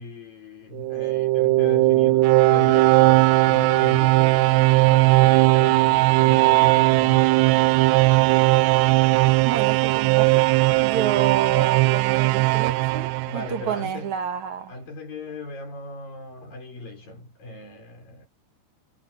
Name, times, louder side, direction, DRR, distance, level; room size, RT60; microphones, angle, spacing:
voice 1, 0.0-7.8 13.2-14.1 14.7-18.3, left 2 dB, 45° left, 7.2 m, -38 dB
sound 1, 0.7-13.8, right 20 dB, 80° right, 2.4 m, -18 dB
voice 2, 9.4-10.4 10.8-14.7, right 9 dB, 55° right, 2.2 m, -29 dB
omnidirectional pair, 5.5 m